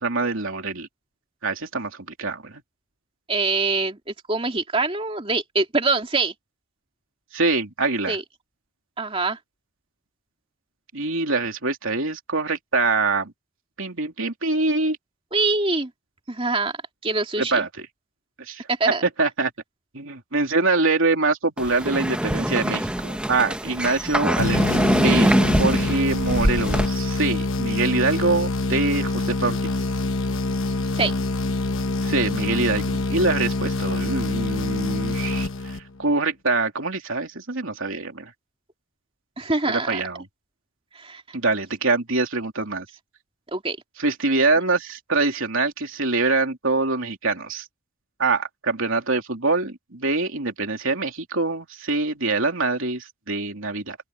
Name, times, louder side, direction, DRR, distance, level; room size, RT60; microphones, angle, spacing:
voice 1, 0.0-0.9 1.4-1.9 2.2-2.6 7.3-8.2 10.9-13.3 13.8-15.0 17.4-17.9 18.5-18.7 19.2-19.5 19.9-29.7 32.0-38.3 39.7-40.3 41.3-42.9 44.0-47.7 48.2-54.0, right 3 dB, 65° right, 3.4 m, -24 dB
voice 2, 3.3-4.0 4.3-6.3 8.1-8.2 9.0-9.4 15.3-15.9 16.3-16.7 17.0-17.7 18.7-19.0 30.9-31.1 39.4-40.0 40.9-41.4 43.5-43.8, right 3 dB, 25° right, 2.7 m, -24 dB
sound 1, 21.6-26.9, equal, 5° right, 1.0 m, -23 dB
sound 2, 24.4-36.1, left 2 dB, 60° left, 1.1 m, -25 dB
open air
head